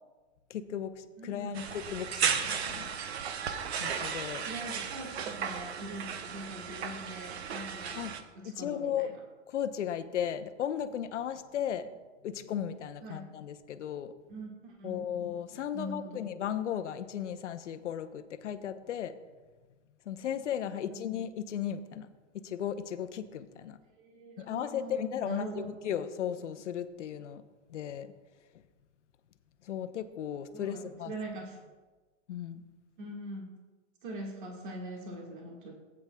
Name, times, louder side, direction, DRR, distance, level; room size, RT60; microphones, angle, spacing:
voice 1, 0.5-2.9 3.8-4.5 8.0-8.1 8.4-9.1 9.5-11.9 12.2-14.1 14.8-19.1 20.1-22.1 22.3-23.8 24.4-27.4 27.7-28.1 29.6-31.1 32.3-32.7, left 9 dB, 75° left, 11 dB, 0.8 m, -35 dB
voice 2, 1.2-1.7 4.4-9.1 13.0-13.3 14.3-15.3 15.7-16.3 20.7-21.1 24.0-26.0 30.5-31.6 33.0-33.6 34.0-35.7, right 1 dB, 45° right, 0 dB, 1.6 m, -43 dB
sound 1, 1.5-8.2, right 7 dB, 60° right, 0.8 m, -35 dB
15.0 x 8.8 x 2.2 m, 1.3 s
hypercardioid pair, 180°, 36 cm